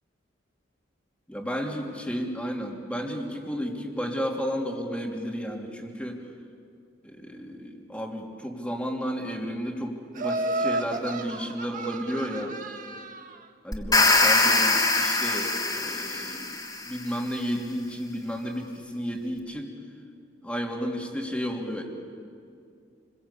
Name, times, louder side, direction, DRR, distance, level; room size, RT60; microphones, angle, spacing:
voice 1, 1.3-6.2 7.0-12.5 13.6-19.7 20.4-21.8, equal, 5° left, 0 dB, 3.2 m, -32 dB
Laughter, 10.1-13.4, right 2 dB, 45° right, 1.5 m, -32 dB
sound 1, 13.7-16.9, left 2 dB, 20° left, 3.2 m, -23 dB
29.0 x 23.0 x 8.5 m, 2.3 s
head